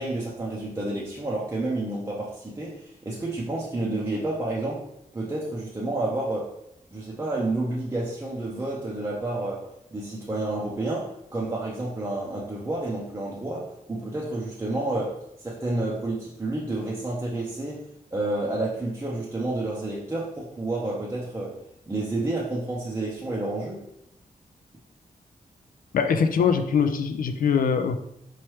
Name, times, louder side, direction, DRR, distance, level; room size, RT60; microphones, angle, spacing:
voice 1, 0.0-4.8 5.1-6.5 6.9-21.6 21.9-23.8, right 2 dB, 15° right, -5 dB, 0.6 m, -30 dB
voice 2, 25.9-28.0, left 6 dB, 75° left, 8 dB, 0.4 m, -22 dB
4.4 x 3.1 x 3.1 m, 0.80 s
wide cardioid pair, 155°, 14 cm